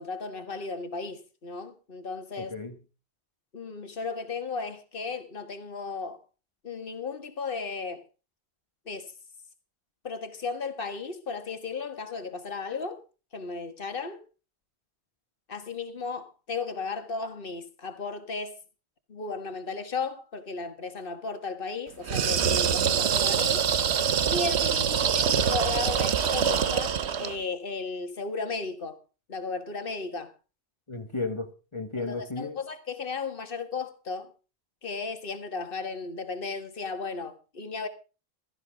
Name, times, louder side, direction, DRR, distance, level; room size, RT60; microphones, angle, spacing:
voice 1, 0.0-2.5 3.5-6.2 6.6-8.0 8.9-9.1 10.0-13.0 13.3-14.2 15.5-18.6 19.1-23.7 24.3-29.0 29.3-30.3 32.0-34.3 34.8-37.9, left 4 dB, 55° left, 1.9 m, -35 dB
voice 2, 2.4-2.8 30.9-32.6, left 3 dB, 25° left, 1.4 m, -34 dB
sound 1, 22.0-27.4, right 8 dB, 85° right, 1.2 m, -25 dB
16.0 x 14.0 x 3.6 m
omnidirectional pair, 1.1 m